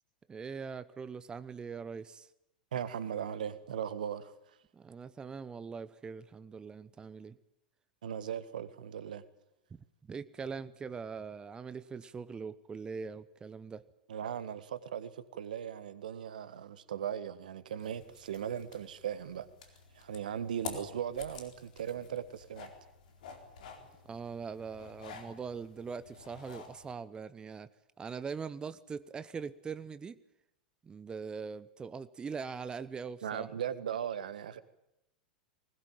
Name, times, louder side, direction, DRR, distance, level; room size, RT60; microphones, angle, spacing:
voice 1, 0.3-2.3 4.7-7.4 9.7-13.8 24.1-27.7 28.0-30.2 30.8-33.5, right 5 dB, 20° right, 15 dB, 0.8 m, -42 dB
voice 2, 2.7-4.3 8.0-9.2 14.1-19.5 19.9-22.7 33.2-34.6, right 9 dB, 70° right, 14 dB, 1.5 m, -38 dB
sound 1, 17.8-26.9, left 5 dB, 65° left, 4.1 m, -50 dB
20.5 x 20.0 x 9.2 m, 0.83 s
figure-of-eight pair, 90°, 5 cm